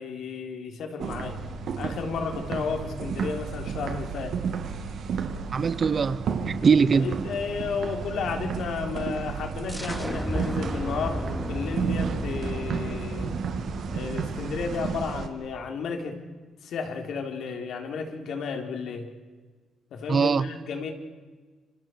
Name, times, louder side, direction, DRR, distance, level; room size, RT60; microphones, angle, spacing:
voice 1, 0.0-1.4 1.8-4.4 7.0-13.3 13.9-16.2 16.6-19.1 19.9-20.9, left 5 dB, 70° left, 3.7 m, -32 dB
sound 1, 1.0-15.3, right 6 dB, 65° right, 2.3 m, -32 dB
voice 2, 5.5-7.1 20.1-20.5, right 5 dB, 45° right, 0.9 m, -22 dB
sound 2, 9.7-15.2, equal, 5° right, 2.4 m, -35 dB
29.0 x 25.5 x 4.7 m
cardioid pair, 90°, 0 cm